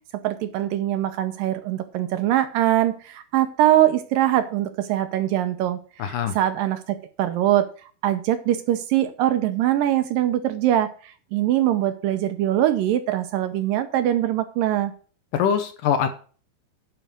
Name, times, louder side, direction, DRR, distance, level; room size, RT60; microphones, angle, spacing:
voice 1, 0.2-7.7 8.0-14.9, right 13 dB, 75° right, 10 dB, 2.3 m, -22 dB
voice 2, 6.0-6.3 15.3-16.1, left 8 dB, 75° left, 8 dB, 2.2 m, -23 dB
11.0 x 5.3 x 6.2 m, 0.39 s
omnidirectional pair, 4.4 m